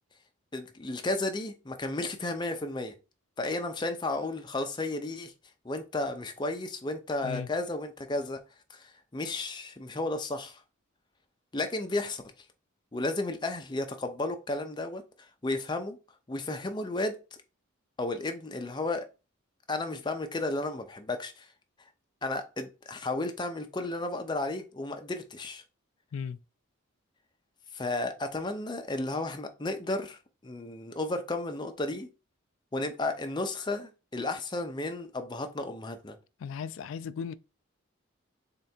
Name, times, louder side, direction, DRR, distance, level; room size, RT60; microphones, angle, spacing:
voice 1, 0.5-2.9 3.4-5.3 5.6-8.4 8.7-10.6 11.5-12.2 12.9-16.0 16.3-17.4 18.0-19.1 19.7-21.5 22.2-25.6 27.7-32.1 32.7-36.2, left 2 dB, 20° left, 0.5 m, -33 dB
voice 2, 36.4-37.3, left 6 dB, 70° left, 0.3 m, -36 dB
3.7 x 3.4 x 4.2 m
head